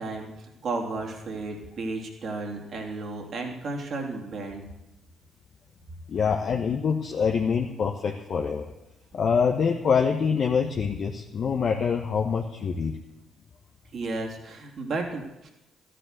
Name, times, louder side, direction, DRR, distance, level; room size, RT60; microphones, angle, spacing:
voice 1, 0.0-4.7 13.9-15.5, right 3 dB, 60° right, 1 dB, 3.0 m, -33 dB
voice 2, 6.1-8.7 9.1-13.0, left 6 dB, 55° left, 1 dB, 1.1 m, -25 dB
13.5 x 10.0 x 6.7 m, 0.95 s
hypercardioid pair, 50°, 0 cm